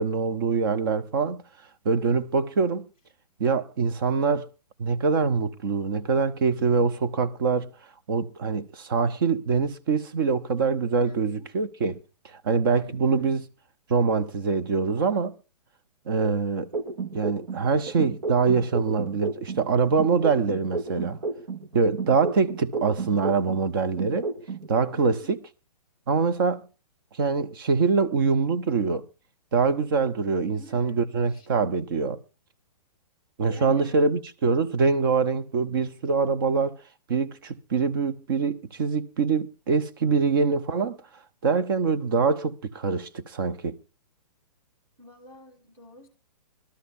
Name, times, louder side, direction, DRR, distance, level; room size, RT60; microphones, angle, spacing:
voice 1, 0.0-1.4 1.8-2.9 3.4-4.5 4.8-7.7 8.1-12.0 12.4-13.4 13.9-15.3 16.1-16.7 17.1-21.2 21.7-24.3 24.7-25.4 26.1-26.6 27.2-29.0 29.5-32.2 33.4-36.7 37.1-41.0 41.4-43.8, right 5 dB, 35° right, 0.8 m, -24 dB
voice 2, 11.0-11.5 12.6-13.4 24.9-25.3 30.5-31.5 33.4-34.0 45.0-46.1, left 1 dB, 15° right, 1.3 m, -48 dB
sound 1, 16.7-19.7 20.0-23.7 24.0-24.7, right 4 dB, 80° right, 2.2 m, -32 dB
20.5 x 12.5 x 2.6 m
hypercardioid pair, 170°, 21 cm